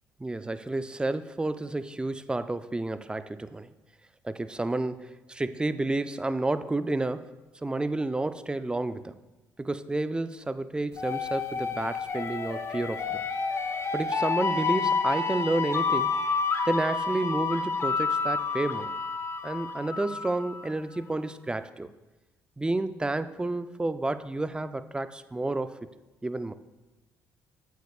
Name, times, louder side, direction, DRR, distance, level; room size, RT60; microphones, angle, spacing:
voice 1, 0.2-3.7 4.2-7.3 7.6-9.2 9.6-13.2 13.9-16.1 16.7-18.9 19.4-21.9 22.6-25.8 26.2-26.5, right 2 dB, 15° right, 12 dB, 0.4 m, -30 dB
sound 1, 11.0-20.6, left 4 dB, 40° left, 0.7 m, -29 dB
8.2 x 8.1 x 2.3 m, 1.1 s
supercardioid pair, 65°, 7 cm